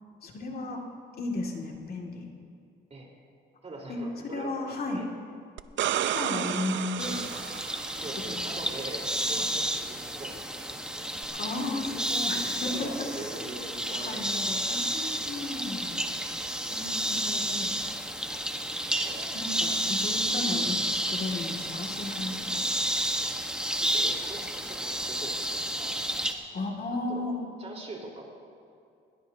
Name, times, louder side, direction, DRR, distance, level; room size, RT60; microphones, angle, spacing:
voice 1, 0.2-0.9 1.2-2.3 3.9-4.0 4.3-5.0 5.9-7.2 8.3-8.4 9.3-9.5 11.4-12.9 13.2-13.3 13.9-16.3 16.7-17.7 19.3-22.7 26.5-27.4, left 2 dB, 50° left, 0 dB, 2.3 m, -34 dB
voice 2, 3.6-4.6 4.9-5.1 7.3-7.4 7.9-11.1 11.9-12.2 12.6-14.4 15.2-15.4 19.0-19.4 20.4-20.5 23.2-23.3 23.8-26.1 27.1-27.3 27.6-28.3, right 2 dB, 35° right, -2 dB, 4.1 m, -43 dB
sound 1, 5.6-8.4 11.2-11.3, right 11 dB, 70° right, 0.5 m, -32 dB
sound 2, 7.0-26.3, right 1 dB, 5° right, 1.3 m, -31 dB
21.0 x 18.0 x 2.8 m, 2.5 s
cardioid pair, 90°, 20 cm